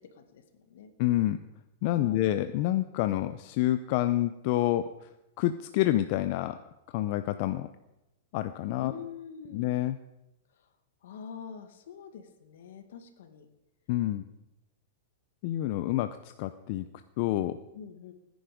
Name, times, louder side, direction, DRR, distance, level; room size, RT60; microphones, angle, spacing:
voice 1, 0.2-0.9 2.0-2.4 3.1-3.2 8.8-9.7 11.0-13.5 17.7-18.1, left 7 dB, 70° left, 8 dB, 2.0 m, -45 dB
voice 2, 1.0-1.4 1.8-4.9 5.4-6.6 6.9-7.7 8.3-8.9 9.5-10.0 13.9-14.3 15.4-16.9 17.2-17.6, left 14 dB, 45° left, 10 dB, 0.6 m, -28 dB
19.0 x 10.0 x 5.2 m, 0.93 s
supercardioid pair, 155°, 0 cm